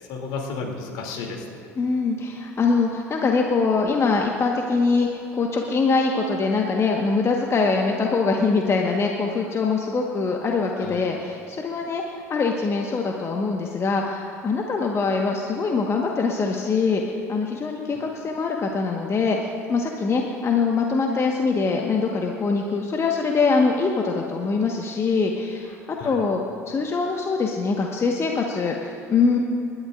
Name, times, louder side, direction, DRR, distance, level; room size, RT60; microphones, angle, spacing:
voice 1, 0.1-1.7 10.8-11.1 15.1-15.2 17.9-18.0 26.0-26.3, left 4 dB, 60° left, 0 dB, 2.8 m, -33 dB
voice 2, 1.8-19.4 19.7-25.8 26.0-26.4 26.7-29.4, left 4 dB, 30° left, 1 dB, 1.4 m, -23 dB
29.5 x 12.0 x 2.5 m, 2.6 s
figure-of-eight pair, 65°, 9 cm